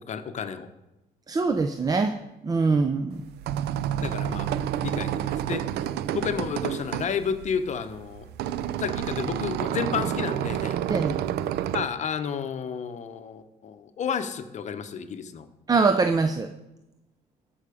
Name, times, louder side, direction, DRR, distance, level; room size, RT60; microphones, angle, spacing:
voice 1, 0.1-0.7 4.0-4.5 4.8-5.6 6.1-8.3 8.8-10.8 11.7-15.5, left 7 dB, 45° left, 10 dB, 0.8 m, -31 dB
voice 2, 1.3-3.2 10.9-11.2 15.7-16.5, right 4 dB, 20° right, 8 dB, 0.5 m, -23 dB
sound 1, 3.1-11.8, right 10 dB, 75° right, 0.5 m, -29 dB
13.5 x 5.6 x 5.0 m, 0.98 s
cardioid pair, 110°, 17 cm